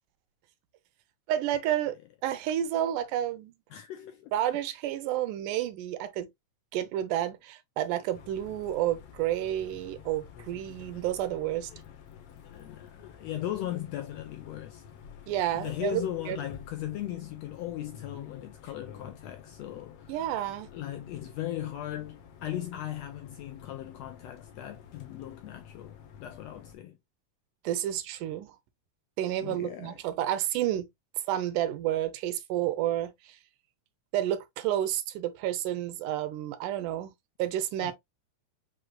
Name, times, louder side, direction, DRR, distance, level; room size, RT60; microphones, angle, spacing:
voice 1, 1.3-3.5 4.3-6.3 6.7-11.7 15.3-16.4 20.1-20.7 27.6-28.5 29.2-30.9 31.3-33.4 34.1-37.1 37.4-37.9, right 12 dB, 85° right, 2.2 m, -30 dB
voice 2, 3.7-4.3 11.9-12.0 12.5-14.8 15.5-20.2 20.7-27.0 29.4-30.0 37.8-37.9, left 12 dB, 80° left, 1.5 m, -38 dB
sound 1, 8.1-26.8, left 8 dB, 65° left, 1.6 m, -50 dB
6.3 x 3.2 x 2.3 m
omnidirectional pair, 3.5 m